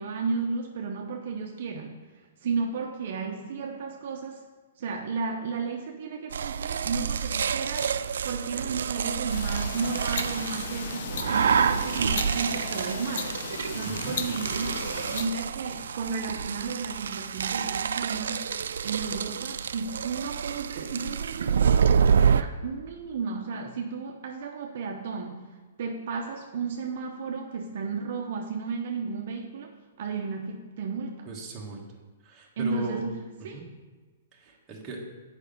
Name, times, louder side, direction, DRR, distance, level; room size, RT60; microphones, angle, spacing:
voice 1, 0.0-2.1 2.4-4.4 4.8-13.3 13.7-14.8 15.1-18.5 18.8-25.4 25.8-31.3 32.6-33.7, right 5 dB, 55° right, 2 dB, 0.7 m, -33 dB
sound 1, 6.3-22.4, right 7 dB, 85° right, 0.3 m, -28 dB
sound 2, 9.3-15.3, left 6 dB, 55° left, 0.6 m, -36 dB
voice 2, 13.8-14.2 31.3-31.8 32.2-33.0 33.4-33.6 34.3-35.0, right 4 dB, 15° right, -3 dB, 1.3 m, -37 dB
8.1 x 5.2 x 5.3 m, 1.3 s
hypercardioid pair, 165°, 0 cm